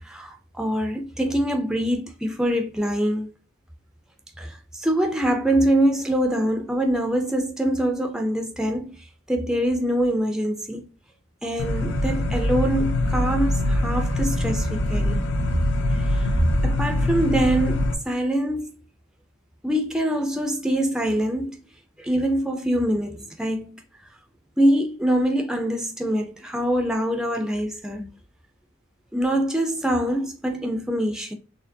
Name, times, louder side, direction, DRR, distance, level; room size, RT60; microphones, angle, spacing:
voice 1, 0.0-3.3 4.4-9.0 9.3-10.9 11.4-15.3 15.9-16.3 16.6-18.8 19.6-21.6 22.0-23.8 24.6-28.1 29.1-31.3, right 1 dB, 5° right, 0.5 m, -24 dB
sound 1, 11.6-17.9, left 1 dB, 65° left, 0.9 m, -23 dB
4.3 x 3.2 x 2.6 m
head